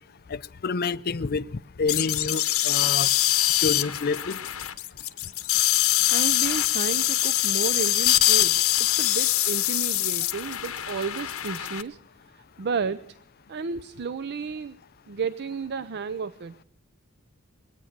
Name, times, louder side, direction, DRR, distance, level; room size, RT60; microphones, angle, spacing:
voice 1, 0.3-1.5 1.8-3.1 3.6-4.4, left 4 dB, 45° left, 0.5 m, -28 dB
sound 1, 1.9-11.8, left 14 dB, 80° left, 1.0 m, -24 dB
voice 2, 6.1-12.0 12.6-13.1 13.5-14.8 15.1-16.6, right 5 dB, 50° right, 0.5 m, -32 dB
23.0 x 9.1 x 6.6 m
head